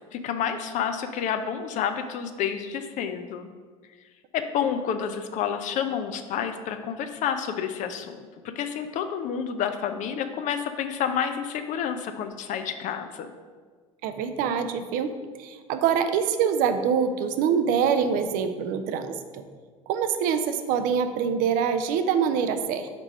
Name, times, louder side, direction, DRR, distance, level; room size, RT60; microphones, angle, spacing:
voice 1, 0.1-3.5 4.3-13.3, left 8 dB, 45° left, 8 dB, 0.5 m, -29 dB
voice 2, 14.0-15.1 15.4-19.4 19.9-22.9, right 7 dB, 50° right, 9 dB, 0.6 m, -25 dB
5.2 x 4.7 x 5.4 m, 1.5 s
figure-of-eight pair, 70°, 18 cm